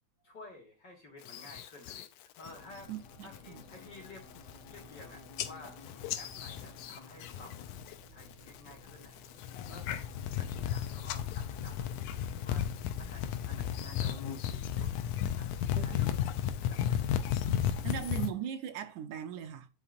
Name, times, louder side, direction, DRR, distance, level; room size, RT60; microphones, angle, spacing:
voice 1, 0.2-2.1 2.4-2.9 3.2-4.3 4.7-5.8 6.2-7.7 8.1-9.2 9.7-10.1 10.3-11.9 12.4-12.7 13.0-14.2 14.5-15.0 15.3-16.3 16.6-17.9, left 2 dB, 45° left, 1.9 m, -52 dB
sound 1, 1.3-2.1 2.5-2.9 3.2-3.6 4.1-4.2 4.4-5.0 5.4-7.9 8.2-8.7 9.2-18.3, left 10 dB, 85° left, 2.0 m, -34 dB
sound 2, 2.4-17.9, left 5 dB, 70° left, 2.4 m, -53 dB
sound 3, 2.8-17.6, left 1 dB, 70° right, 2.6 m, -57 dB
voice 2, 2.9-3.7 15.7-16.2 17.8-19.7, right 10 dB, 85° right, 2.3 m, -39 dB
9.8 x 5.5 x 2.5 m
omnidirectional pair, 3.4 m